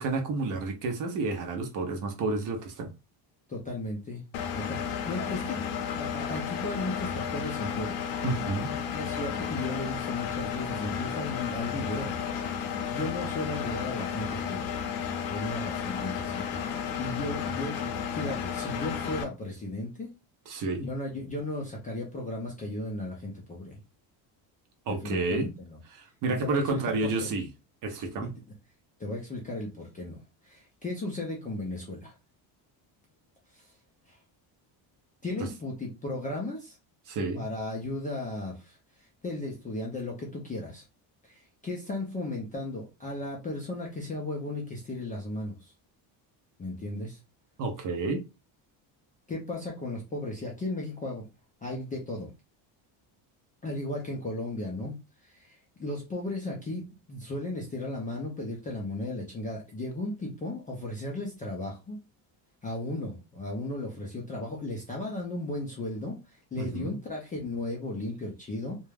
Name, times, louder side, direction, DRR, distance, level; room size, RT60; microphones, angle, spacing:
voice 1, 0.0-2.9 8.2-8.8 20.5-20.9 24.9-25.5 25.9-27.5 27.8-28.3 37.1-37.4 47.6-48.2 66.6-66.9, right 3 dB, 45° right, 0.6 m, -30 dB
voice 2, 3.5-4.2 4.5-5.6 6.0-8.0 8.9-14.8 15.3-20.1 20.8-23.8 24.9-25.8 26.4-27.3 28.2-28.3 29.0-32.1 33.5-33.7 34.1-34.2 35.2-36.8 37.3-40.8 41.2-45.7 46.6-47.2 49.3-51.3 51.6-52.3 53.6-62.0 62.6-68.8, left 2 dB, 20° left, 0.3 m, -35 dB
Engine, 4.3-19.2, left 7 dB, 80° left, 0.7 m, -33 dB
2.3 x 2.2 x 3.2 m
cardioid pair, 160°, 47 cm